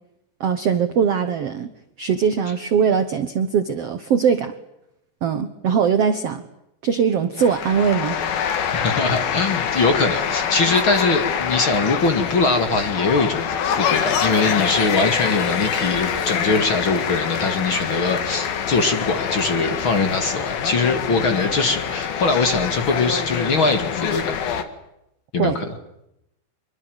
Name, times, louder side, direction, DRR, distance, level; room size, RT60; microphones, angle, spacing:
voice 1, 0.4-4.5 5.2-6.4 6.8-8.3 25.4-25.6, right 7 dB, 60° right, 10 dB, 1.6 m, -21 dB
sound 1, 7.4-24.6, left 8 dB, 75° left, 3.7 m, -25 dB
voice 2, 8.7-24.3 25.3-25.7, left 3 dB, 40° left, 7 dB, 2.6 m, -22 dB
26.0 x 23.5 x 8.0 m, 0.84 s
omnidirectional pair, 4.4 m